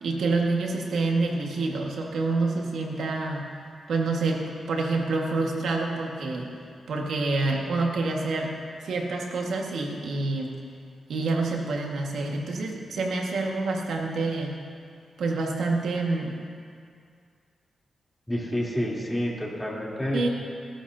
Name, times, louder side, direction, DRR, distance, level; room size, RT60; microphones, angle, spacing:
voice 1, 0.0-3.5 3.9-4.4 4.7-6.5 6.9-8.5 8.8-10.6 11.1-14.6 15.2-16.4 20.1-20.3, right 3 dB, 80° right, 0 dB, 1.8 m, -27 dB
voice 2, 18.3-20.3, equal, 10° left, -4 dB, 3.4 m, -29 dB
19.5 x 12.5 x 2.8 m, 2.2 s
cardioid pair, 60°, 0 cm